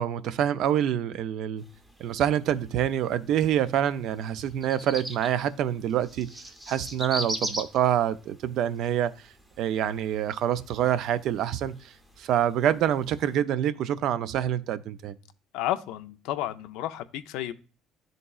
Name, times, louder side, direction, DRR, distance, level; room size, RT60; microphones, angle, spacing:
voice 1, 0.0-1.6 2.0-6.3 6.7-9.1 9.6-11.9 12.2-15.2, right 10 dB, 55° right, 0.3 m, -26 dB
sound 1, 1.6-13.4, equal, 10° right, 0.6 m, -41 dB
voice 2, 15.5-17.5, left 13 dB, 80° left, 0.4 m, -32 dB
11.0 x 3.8 x 2.3 m
cardioid pair, 160°, 0 cm